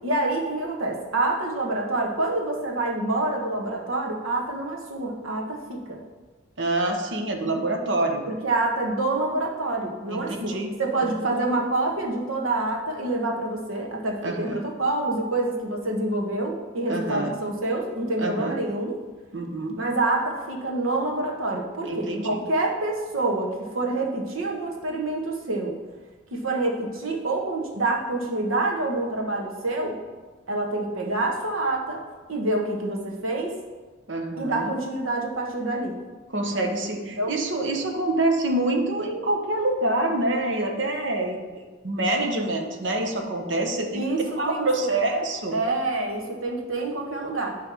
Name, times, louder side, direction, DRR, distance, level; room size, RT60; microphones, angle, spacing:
voice 1, 0.0-6.0 8.3-19.0 19.7-25.8 26.3-30.0 30.5-32.0 32.3-33.5 34.4-36.0 37.2-37.3 43.9-44.9 45.5-47.6, right 2 dB, 90° right, 0 dB, 1.3 m, -27 dB
voice 2, 6.6-8.2 10.1-10.7 14.2-14.6 16.9-17.4 18.2-18.6 19.3-19.8 21.8-22.4 34.1-34.7 36.3-41.4 41.8-44.0 44.4-45.6, right 2 dB, 60° right, 4 dB, 1.0 m, -26 dB
10.0 x 3.4 x 6.2 m, 1.3 s
head